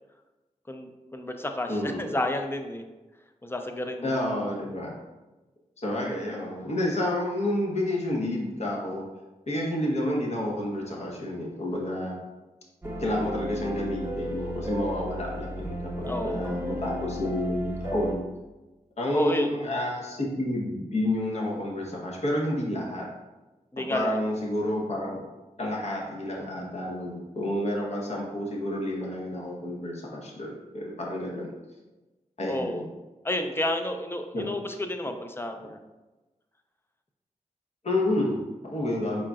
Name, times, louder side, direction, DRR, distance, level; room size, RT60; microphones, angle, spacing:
voice 1, 0.7-2.8 3.4-4.1 16.1-16.4 19.1-19.5 23.7-24.1 32.5-32.8 33.2-35.8, left 1 dB, 20° left, 5 dB, 0.5 m, -31 dB
voice 2, 1.7-2.1 4.0-4.9 5.8-9.0 9.5-12.2 13.0-18.2 19.0-23.1 23.8-25.2 25.6-31.5 32.4-32.8 34.3-34.4 35.6-35.7 37.8-39.3, left 1 dB, 55° left, -2 dB, 1.0 m, -30 dB
sound 1, 12.8-18.1, equal, 20° right, 0.8 m, -34 dB
4.0 x 3.7 x 2.3 m, 1.1 s
cardioid pair, 55°, 13 cm